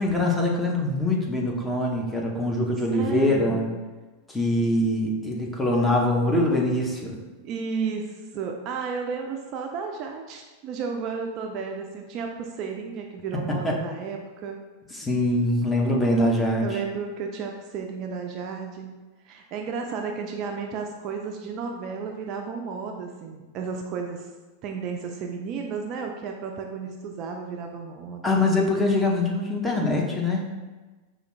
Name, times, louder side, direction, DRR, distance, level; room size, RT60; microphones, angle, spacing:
voice 1, 0.0-3.7 4.3-7.2 13.6-13.7 14.9-16.8 28.2-30.6, left 1 dB, 10° left, -1 dB, 0.7 m, -23 dB
voice 2, 2.9-3.6 7.4-14.6 16.6-18.9 19.2-24.3 24.6-28.4, right 5 dB, 40° right, 2 dB, 0.4 m, -33 dB
5.0 x 2.4 x 3.2 m, 1.2 s
figure-of-eight pair, 90°, 0 cm